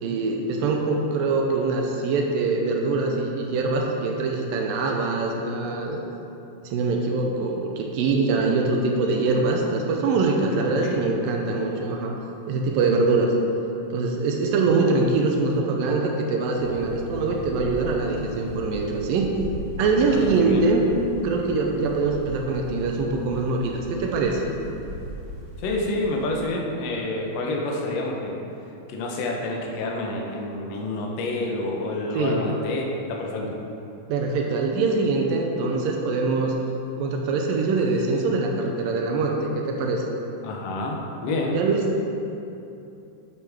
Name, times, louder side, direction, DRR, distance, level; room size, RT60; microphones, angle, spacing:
voice 1, 0.0-6.0 6.6-12.2 12.5-13.3 13.9-19.3 19.8-20.9 21.2-24.4 32.1-32.4 34.1-36.6 37.0-40.0 41.5-42.1, right 3 dB, 85° right, 1 dB, 2.4 m, -23 dB
sound 1, 16.6-26.4, right 1 dB, 65° right, 1.4 m, -38 dB
voice 2, 20.1-20.6 25.6-28.4 28.9-33.6 40.4-41.6, left 2 dB, 65° left, 0 dB, 1.7 m, -28 dB
9.8 x 8.3 x 3.6 m, 2.8 s
omnidirectional pair, 4.0 m